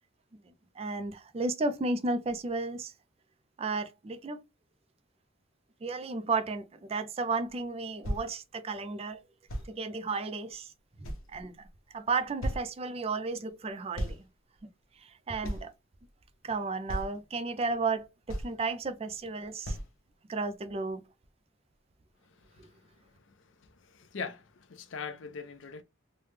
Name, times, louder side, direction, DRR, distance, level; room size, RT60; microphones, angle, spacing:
voice 1, 0.8-2.9 3.6-4.4 5.8-9.2 9.6-10.7 11.0-11.7 11.9-14.2 14.6-14.7 15.0-15.7 16.4-19.8 20.3-21.0 22.6-22.7, right 3 dB, 30° right, 0.4 m, -33 dB
sound 1, 7.5-7.6 8.0-8.3 9.5-9.7 10.5-10.6 11.0-11.7 12.0-12.1 12.4-12.7 13.9-14.2 14.6-14.7 15.4-15.7 16.3-16.4 16.9-17.2 17.9-18.0 18.3-18.7 19.1-19.2 19.6-19.9 20.5-20.6, equal, 85° left, 0.8 m, -35 dB
voice 2, 23.6-25.8, left 5 dB, 65° left, 0.5 m, -41 dB
3.2 x 2.1 x 3.2 m
head